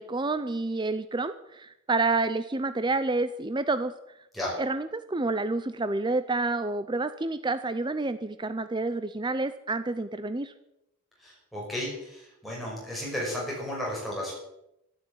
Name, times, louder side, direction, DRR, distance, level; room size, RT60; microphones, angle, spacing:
voice 1, 0.0-3.9 4.6-10.5, right 3 dB, 20° right, 11 dB, 0.6 m, -29 dB
voice 2, 11.2-14.3, left 1 dB, ahead, -5 dB, 5.8 m, -34 dB
12.5 x 12.0 x 8.7 m, 0.85 s
head